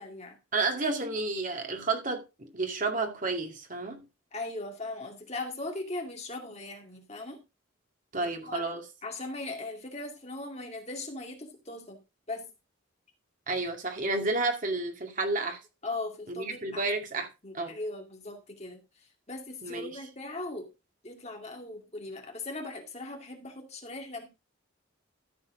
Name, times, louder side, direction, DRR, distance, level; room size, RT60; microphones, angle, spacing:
voice 1, 0.0-0.4 4.3-7.4 8.2-8.7 9.0-12.0 12.3-12.5 15.8-16.8 17.4-20.7 21.0-24.3, left 2 dB, 30° left, 2.3 m, -39 dB
voice 2, 0.5-4.0 8.1-8.8 13.5-15.6 16.3-17.3 17.5-17.8 19.6-20.0, right 3 dB, 40° right, 2.2 m, -31 dB
13.5 x 7.3 x 3.8 m
head